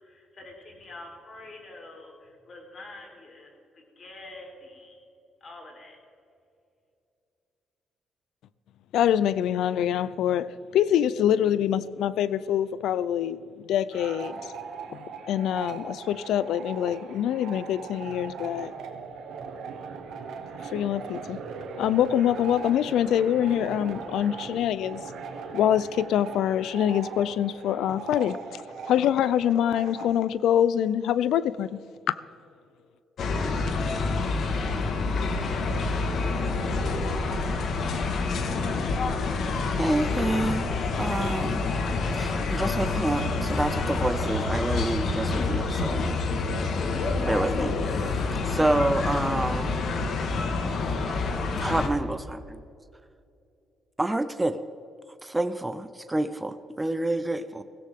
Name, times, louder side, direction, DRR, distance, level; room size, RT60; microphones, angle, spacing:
voice 1, 0.0-5.0 5.4-6.0, left 2 dB, 45° left, 1 dB, 3.8 m, -46 dB
voice 2, 8.9-13.4 13.7-14.4 14.9-18.7 20.7-21.4 21.8-25.0 25.5-28.6 28.9-31.8 32.1-32.2, left 10 dB, 80° left, 17 dB, 0.5 m, -25 dB
sound 1, 13.9-30.2, right 5 dB, 80° right, 1.6 m, -39 dB
sound 2, 33.2-51.9, left 3 dB, 65° left, 1.6 m, -27 dB
voice 3, 39.8-40.7 40.9-41.7 42.1-46.0 47.2-49.7 51.6-52.6 54.0-54.6 55.2-57.6, right 1 dB, 15° right, 10 dB, 0.6 m, -28 dB
17.0 x 16.0 x 3.7 m, 2.6 s
cardioid pair, 90°, 0 cm